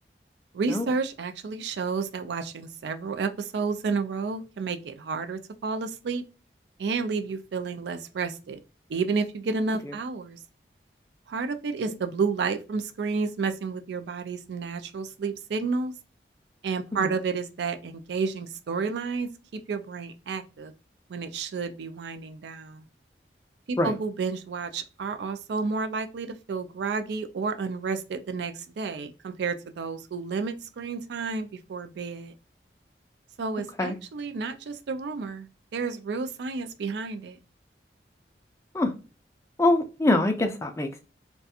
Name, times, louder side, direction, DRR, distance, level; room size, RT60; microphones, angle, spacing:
voice 1, 0.5-6.2 6.8-8.6 8.9-10.4 11.3-15.9 16.6-19.3 19.7-20.7 21.1-22.8 23.7-32.3 33.4-35.5 35.7-37.4, right 4 dB, 75° right, 0.4 m, -31 dB
voice 2, 39.6-41.0, left 2 dB, 15° left, 0.3 m, -24 dB
2.4 x 2.2 x 2.6 m
head